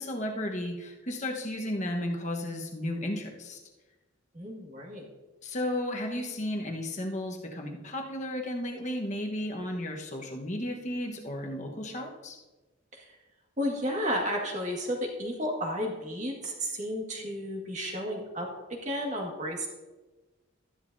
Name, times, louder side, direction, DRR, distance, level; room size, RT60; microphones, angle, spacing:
voice 1, 0.0-3.6 5.4-12.4, left 1 dB, 35° left, 1 dB, 1.2 m, -34 dB
voice 2, 4.3-5.1 12.9-13.1 13.6-19.7, equal, 35° right, 0 dB, 1.8 m, -32 dB
13.0 x 11.0 x 2.7 m, 1.2 s
head